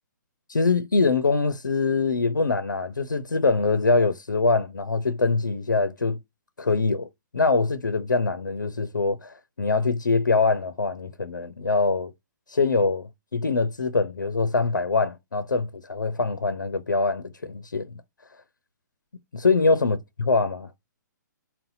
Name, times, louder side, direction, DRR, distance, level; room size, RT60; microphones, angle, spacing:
voice 1, 0.5-6.2 6.6-7.1 7.3-12.1 12.5-17.9 19.3-20.7, left 3 dB, 85° left, 0.5 m, -23 dB
3.9 x 2.1 x 3.9 m
figure-of-eight pair, 125°, 10 cm